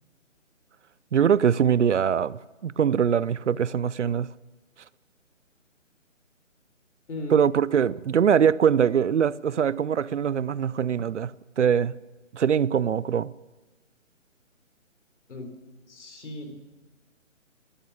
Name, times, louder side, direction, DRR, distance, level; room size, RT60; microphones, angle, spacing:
voice 1, 1.1-4.3 7.3-11.3 11.6-11.9 12.3-13.3, right 8 dB, 65° right, 0.5 m, -22 dB
voice 2, 15.9-16.6, left 1 dB, 60° left, 3.9 m, -37 dB
13.0 x 12.5 x 7.2 m
figure-of-eight pair, 155°, 39 cm